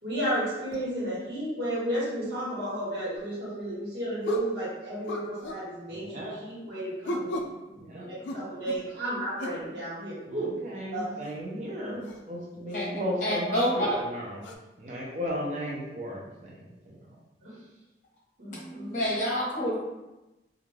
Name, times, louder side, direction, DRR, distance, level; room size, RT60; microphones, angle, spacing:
voice 1, 0.0-10.5 10.9-11.1 12.8-12.9 17.4-17.5 18.4-18.9, right 1 dB, 70° right, -8 dB, 1.2 m, -33 dB
sound 1, 3.2-3.3 4.2-4.6 5.1-5.7 7.0-7.6 8.2-8.9 9.4-9.6 11.2-11.4 12.0-12.2 12.7-12.9 13.6-13.7 14.4-14.5, left 1 dB, 90° left, 0.3 m, -35 dB
voice 2, 5.9-6.3 7.8-8.1 10.3-14.5 14.8-17.2, equal, 40° right, -4 dB, 0.4 m, -35 dB
voice 3, 13.2-14.0 18.5-19.8, equal, 45° left, -5 dB, 0.8 m, -28 dB
2.4 x 2.2 x 3.1 m, 1.0 s
head